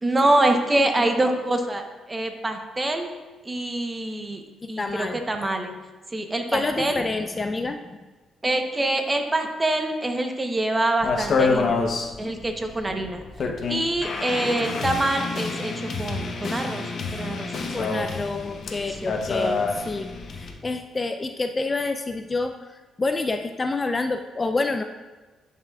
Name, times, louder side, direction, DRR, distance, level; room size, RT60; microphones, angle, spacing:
voice 1, 0.0-3.1 3.4-4.4 4.7-5.7 6.1-7.0 8.4-11.8 12.2-13.2 13.7-17.8 19.0-19.2, right 1 dB, 20° right, 5 dB, 0.9 m, -25 dB
voice 2, 4.8-5.2 6.5-8.0 17.7-22.5 23.0-24.8, left 3 dB, 25° left, 6 dB, 0.4 m, -28 dB
sound 1, 11.0-20.5, left 4 dB, 55° left, 0.8 m, -28 dB
11.0 x 5.6 x 2.3 m, 1.2 s
cardioid pair, 90°, 0 cm